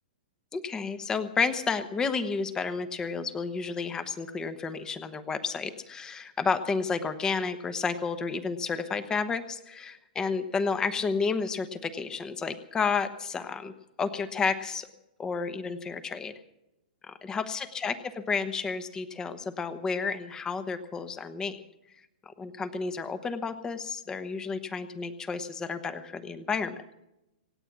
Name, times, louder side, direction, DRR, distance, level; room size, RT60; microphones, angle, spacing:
voice 1, 0.5-13.7 14.0-14.9 15.2-16.3 17.0-21.6 22.2-26.8, left 5 dB, 15° left, 11 dB, 1.1 m, -31 dB
26.5 x 8.9 x 6.1 m, 0.89 s
hypercardioid pair, 145°, 5 cm